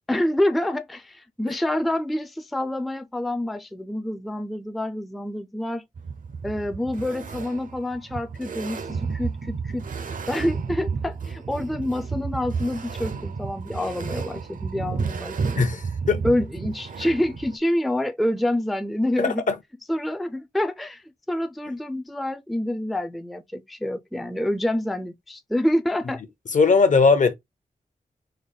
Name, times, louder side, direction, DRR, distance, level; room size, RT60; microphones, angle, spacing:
voice 1, 0.1-5.8 6.4-9.9 10.3-15.7 16.2-19.4 19.9-26.2, left 1 dB, ahead, 0.3 m, -27 dB
sound 1, 6.0-17.6, right 5 dB, 65° right, 0.5 m, -32 dB
voice 2, 15.6-16.2 19.2-19.6 26.5-27.4, left 4 dB, 55° left, 0.7 m, -19 dB
3.8 x 2.2 x 3.3 m
wide cardioid pair, 110°, 15 cm